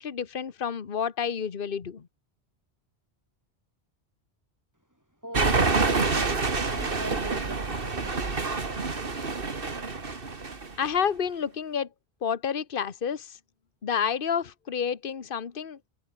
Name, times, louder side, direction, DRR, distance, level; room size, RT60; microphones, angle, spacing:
voice 1, 0.0-2.1 10.8-11.9 12.2-13.4 13.8-15.8, left 7 dB, 55° left, 1.4 m, -29 dB
voice 2, 5.2-9.4, equal, 15° right, 4.6 m, -42 dB
sound 1, 5.3-10.9, right 4 dB, 55° right, 2.2 m, -27 dB
omnidirectional pair, 1.1 m